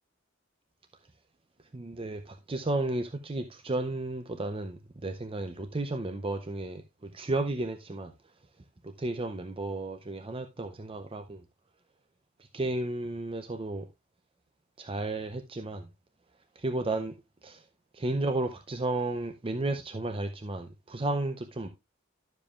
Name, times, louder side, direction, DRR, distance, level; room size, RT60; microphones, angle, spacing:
voice 1, 1.7-8.1 8.8-11.4 12.5-13.9 14.8-15.9 16.6-17.2 17.4-17.6 17.9-21.7, right 2 dB, 25° right, 0.6 m, -33 dB
12.0 x 7.1 x 2.4 m
head